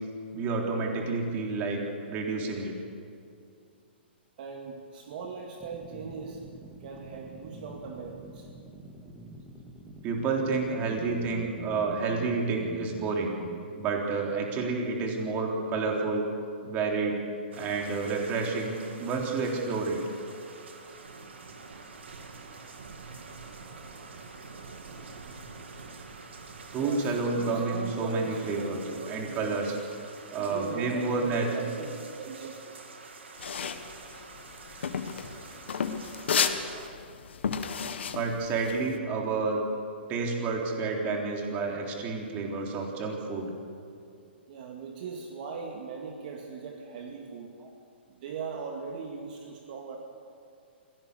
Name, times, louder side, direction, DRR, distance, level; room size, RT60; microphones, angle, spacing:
voice 1, 0.3-2.8 10.0-13.3 13.8-16.2 16.6-17.2 17.6-18.7 19.0-20.0 26.7-28.8 29.1-29.7 30.3-31.5 38.1-39.6 40.1-43.5 47.6-47.7, right 4 dB, 25° right, 0 dB, 3.7 m, -29 dB
voice 2, 4.4-6.4 6.8-8.5 26.7-29.8 30.4-32.7 44.5-47.5 48.1-50.0, right 5 dB, 50° right, 2 dB, 2.2 m, -39 dB
sound 1, 5.6-13.6, right 2 dB, 5° right, 2.3 m, -46 dB
sound 2, 17.5-36.9, right 4 dB, 90° right, 2.8 m, -47 dB
sound 3, 33.4-38.9, left 6 dB, 80° left, 1.7 m, -32 dB
25.5 x 17.5 x 6.9 m, 2.4 s
hypercardioid pair, 150°, 6 cm